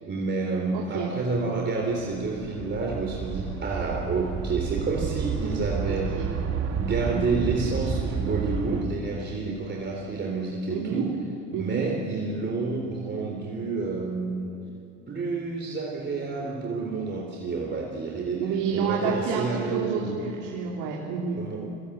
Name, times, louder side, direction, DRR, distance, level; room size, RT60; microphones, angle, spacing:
voice 1, 0.0-6.2 6.7-11.1 11.6-14.5 15.1-18.5 18.7-20.3 21.4-21.7, right 4 dB, 35° right, 0 dB, 3.5 m, -29 dB
voice 2, 0.7-1.1 5.9-6.3 7.1-7.4 10.7-11.1 11.5-11.9 18.4-21.5, right 5 dB, 75° right, -2 dB, 3.6 m, -29 dB
sound 1, 1.8-8.8, right 6 dB, 50° right, 2.8 m, -31 dB
25.0 x 23.5 x 7.9 m, 2.6 s
supercardioid pair, 90°, 33 cm